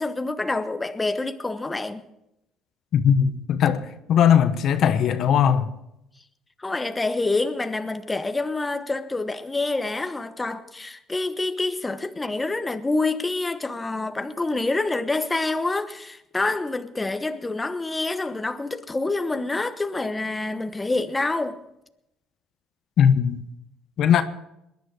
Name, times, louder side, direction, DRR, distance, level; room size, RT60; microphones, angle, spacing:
voice 1, 0.0-2.0 6.6-21.6, left 2 dB, 20° left, 1.1 m, -27 dB
voice 2, 2.9-3.8 4.1-5.7 23.0-23.4 24.0-24.2, left 8 dB, 65° left, 1.1 m, -19 dB
21.0 x 10.5 x 4.9 m
supercardioid pair, 80°, 0 cm